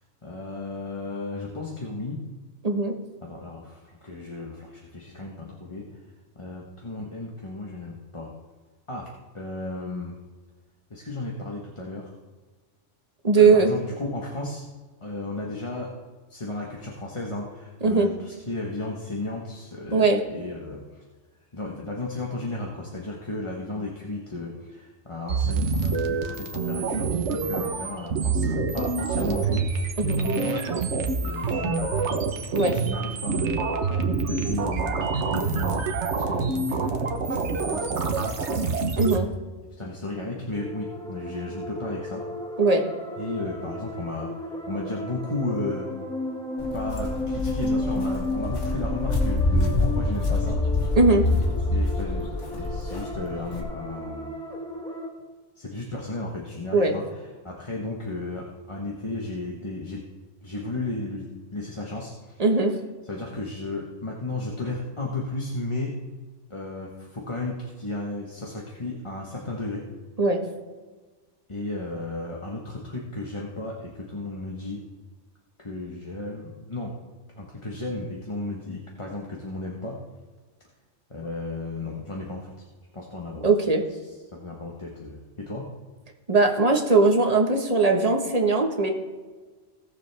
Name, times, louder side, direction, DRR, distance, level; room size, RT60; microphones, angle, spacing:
voice 1, 0.2-2.2 3.2-5.9 6.3-8.3 8.9-10.2 10.9-12.1 13.3-14.7 15.0-15.9 16.3-21.0 21.5-30.6 31.2-32.2 32.6-38.2 38.5-38.8 39.7-42.2 43.2-45.9 46.7-50.6 51.7-54.4 55.5-60.1 60.4-62.4 63.0-65.9 66.5-69.9 71.5-74.8 75.6-76.9 77.3-80.0 81.1-82.6 82.9-83.5 83.9-85.7, left 2 dB, 25° left, -1 dB, 1.2 m, -34 dB
voice 2, 2.6-2.9 13.2-13.7 17.8-18.1 19.9-20.2 30.0-30.2 32.5-32.8 39.0-39.3 42.6-42.8 50.9-51.2 56.7-56.9 62.4-62.7 70.2-70.4 83.4-83.8 86.3-88.9, right 3 dB, 30° right, 2 dB, 1.4 m, -20 dB
sound 1, 25.3-39.2, right 4 dB, 70° right, 1.3 m, -26 dB
sound 2, 40.5-55.1, left 1 dB, 5° left, 1.6 m, -34 dB
Walk footsteps, 46.6-53.6, left 2 dB, 80° left, 2.0 m, -26 dB
18.0 x 6.9 x 3.4 m, 1.3 s
omnidirectional pair, 1.2 m